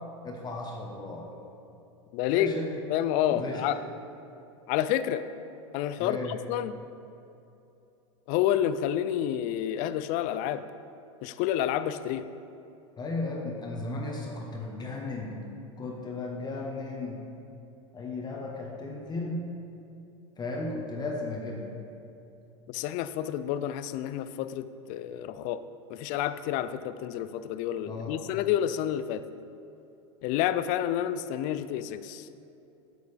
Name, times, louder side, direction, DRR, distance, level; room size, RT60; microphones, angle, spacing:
voice 1, 0.2-1.3 2.3-2.7 3.3-3.7 6.0-6.4 13.0-15.4 15.8-17.2 17.9-19.4 20.4-21.7 27.9-28.3, left 2 dB, 25° left, 0 dB, 1.1 m, -35 dB
voice 2, 2.1-2.5 2.9-3.8 4.7-5.2 5.7-6.8 8.3-10.6 11.2-12.2 22.7-25.6 25.9-29.2 30.2-32.3, left 11 dB, 55° left, 13 dB, 0.4 m, -29 dB
8.4 x 8.1 x 3.4 m, 2.8 s
hypercardioid pair, 110°, 17 cm